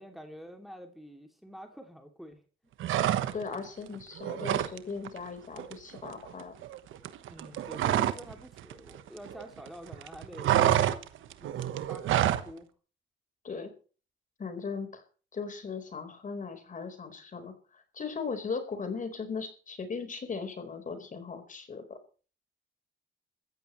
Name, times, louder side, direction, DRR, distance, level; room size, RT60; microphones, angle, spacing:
voice 1, 0.0-2.4 7.3-10.5 11.4-12.7, equal, ahead, 4 dB, 2.6 m, -47 dB
sound 1, 2.8-3.6 3.9-4.8 5.0-5.3 5.6-8.3 8.6-9.7 9.9-12.5, right 12 dB, 80° right, 1.2 m, -28 dB
voice 2, 3.3-6.5 13.4-13.7 14.4-15.0 15.3-21.8, left 5 dB, 40° left, 7 dB, 4.3 m, -38 dB
22.5 x 14.5 x 3.2 m, 0.39 s
cardioid pair, 90°, 20 cm